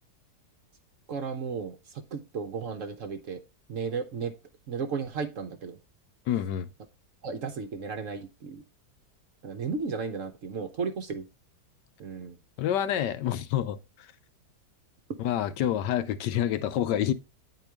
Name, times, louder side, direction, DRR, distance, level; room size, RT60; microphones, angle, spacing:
voice 1, 1.1-3.4 3.7-4.3 4.7-5.8 7.2-8.6 9.4-11.3 12.0-12.4, right 5 dB, 55° right, 1.0 m, -34 dB
voice 2, 6.3-6.7 12.6-14.1 15.2-17.1, left 11 dB, 75° left, 1.3 m, -28 dB
9.6 x 4.5 x 3.4 m
omnidirectional pair, 1.9 m